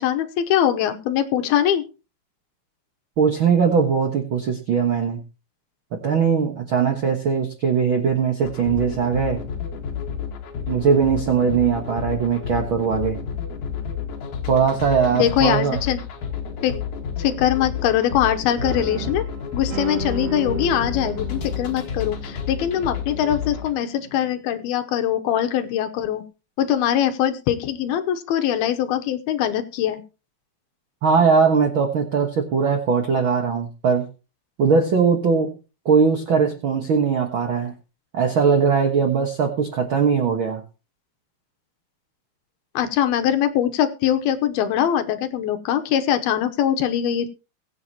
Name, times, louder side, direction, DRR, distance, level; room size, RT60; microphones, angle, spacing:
voice 1, 0.0-1.8 15.1-16.0 16.6-16.8 17.2-19.3 19.5-26.2 26.6-30.0 42.7-47.3, left 10 dB, 80° left, 8 dB, 2.7 m, -22 dB
voice 2, 3.2-5.2 5.9-9.4 10.7-13.2 14.5-15.8 31.0-34.1 34.6-35.5 35.8-37.7 38.1-40.6, right 6 dB, 65° right, 4 dB, 1.2 m, -20 dB
sound 1, 8.4-23.7, left 7 dB, 55° left, 2.8 m, -31 dB
sound 2, 18.6-24.3, right 5 dB, 85° right, 3.6 m, -35 dB
23.0 x 7.9 x 2.9 m, 0.32 s
omnidirectional pair, 4.5 m